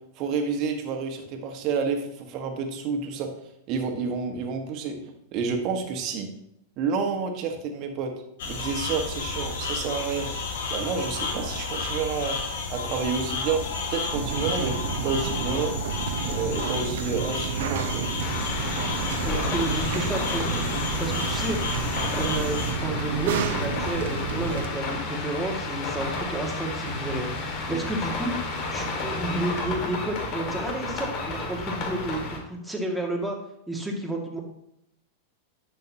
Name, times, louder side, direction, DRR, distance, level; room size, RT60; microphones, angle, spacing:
voice 1, 0.2-3.3 3.7-5.0 5.3-6.3 6.8-8.1 8.4-10.3 10.7-12.4 12.7-15.7 16.2-18.0 27.7-27.8, right 5 dB, 45° right, 4 dB, 1.5 m, -29 dB
sound 1, 8.4-22.7, left 4 dB, 65° left, 1.7 m, -32 dB
sound 2, 14.1-24.7, right 7 dB, 65° right, 0.8 m, -31 dB
sound 3, 18.2-32.4, left 3 dB, 45° left, 2.0 m, -32 dB
voice 2, 19.2-21.6 22.2-28.4 28.6-33.4 33.7-34.4, right 1 dB, 5° right, -1 dB, 2.1 m, -31 dB
10.5 x 7.1 x 2.9 m, 0.78 s
hypercardioid pair, 95°, 0 cm